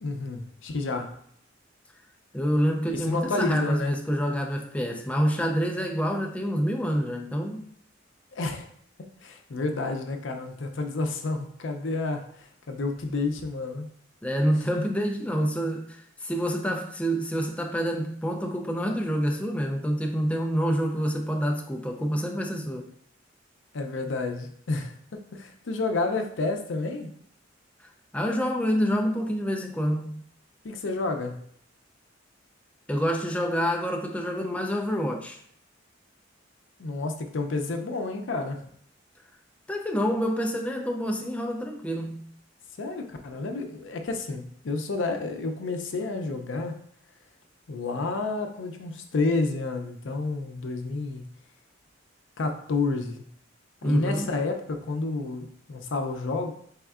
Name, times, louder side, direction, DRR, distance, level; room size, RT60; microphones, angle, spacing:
voice 1, 0.0-1.1 2.9-4.0 8.3-8.7 9.0-13.9 23.7-27.1 30.6-31.4 36.8-38.6 42.8-46.8 47.7-51.3 52.4-53.2 53.8-56.5, left 3 dB, 70° left, 5 dB, 0.5 m, -30 dB
voice 2, 2.3-7.7 14.2-22.9 28.1-30.2 32.9-35.4 39.7-42.3 53.8-54.3, equal, 5° left, 2 dB, 0.3 m, -27 dB
4.3 x 3.5 x 2.4 m, 0.64 s
head